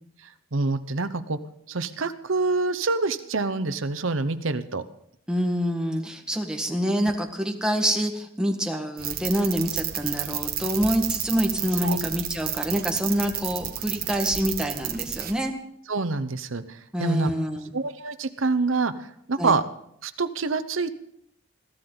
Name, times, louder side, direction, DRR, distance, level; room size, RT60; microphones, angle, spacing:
voice 1, 0.5-1.4 1.7-4.8 11.8-12.0 15.9-17.3 17.7-19.6 20.0-20.9, right 3 dB, 75° right, 11 dB, 1.0 m, -26 dB
voice 2, 5.3-15.5 16.9-17.7 19.4-19.6, equal, 5° right, 2 dB, 1.6 m, -26 dB
sound 1, 9.0-15.3, right 11 dB, 45° right, 1.5 m, -31 dB
21.5 x 15.0 x 3.9 m, 0.71 s
head